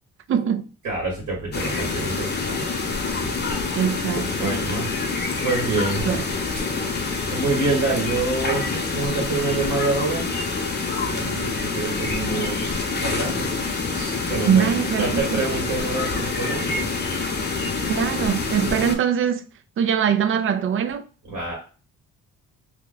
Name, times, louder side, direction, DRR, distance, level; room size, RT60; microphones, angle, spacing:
voice 1, 0.3-0.7 3.7-4.5 6.1-6.2 14.4-15.4 17.9-19.5 19.8-21.1, right 8 dB, 45° right, 0.4 m, -22 dB
voice 2, 0.8-2.6 4.4-4.9 5.4-6.1 6.6-6.7 7.3-10.3 11.1-13.5 13.9-16.9 21.2-21.5, right 3 dB, 80° right, 1.6 m, -27 dB
sound 1, 1.5-18.9, left 4 dB, 35° left, 0.7 m, -26 dB
2.9 x 2.2 x 3.8 m
cardioid pair, 90°, 30 cm